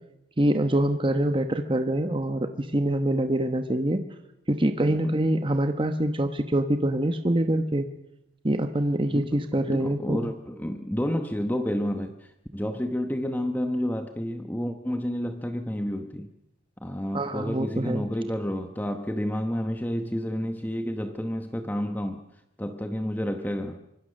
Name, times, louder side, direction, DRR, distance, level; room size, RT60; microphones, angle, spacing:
voice 1, 0.4-4.0 4.5-7.9 8.4-10.3 17.1-18.0, right 1 dB, 25° right, 7 dB, 1.1 m, -25 dB
voice 2, 4.8-5.2 9.1-16.3 16.8-22.3 22.6-23.8, equal, 10° left, 6 dB, 1.0 m, -30 dB
25.0 x 22.0 x 6.5 m, 0.85 s
head